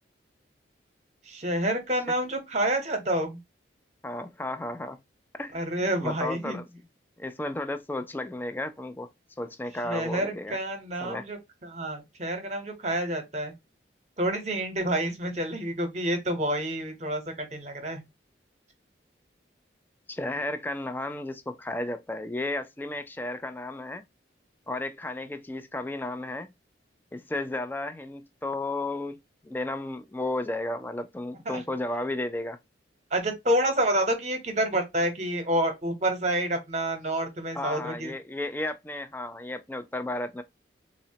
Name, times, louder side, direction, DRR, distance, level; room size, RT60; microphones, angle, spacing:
voice 1, 1.3-3.4 5.5-6.6 9.8-13.5 14.2-18.0 31.5-31.6 33.1-38.1, right 1 dB, 35° right, 0.9 m, -28 dB
voice 2, 4.0-5.0 5.3-6.8 7.2-9.1 9.4-10.6 11.0-11.3 20.1-24.0 24.7-26.5 27.1-32.6 37.5-40.4, left 2 dB, 10° left, 0.3 m, -33 dB
3.8 x 2.1 x 2.7 m
head